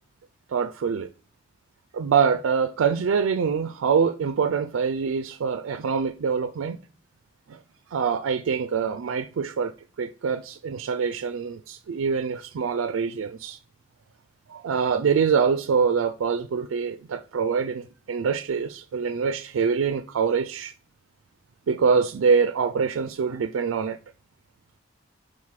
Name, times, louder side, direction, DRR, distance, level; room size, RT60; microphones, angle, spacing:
voice 1, 0.5-1.1 1.9-6.8 7.5-7.6 7.9-9.7 10.0-13.6 14.5-20.7 21.7-24.0, right 6 dB, 90° right, 0.4 m, -24 dB
4.7 x 4.0 x 5.7 m
head